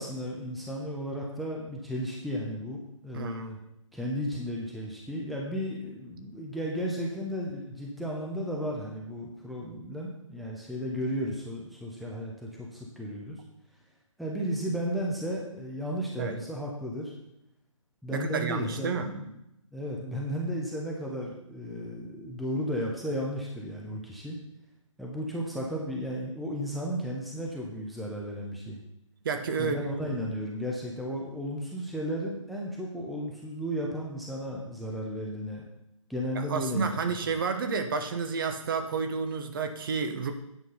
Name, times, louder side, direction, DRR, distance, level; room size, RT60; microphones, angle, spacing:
voice 1, 0.0-3.6 3.9-13.4 14.2-17.1 18.0-19.3 19.7-24.4 25.0-28.8 29.6-35.7 36.1-37.2, equal, ahead, -3 dB, 0.8 m, -34 dB
voice 2, 3.1-3.5 16.2-16.3 18.1-19.1 29.2-29.9 36.3-40.3, right 5 dB, 40° right, 7 dB, 1.2 m, -30 dB
9.4 x 6.3 x 5.5 m, 0.82 s
figure-of-eight pair, 145°, 17 cm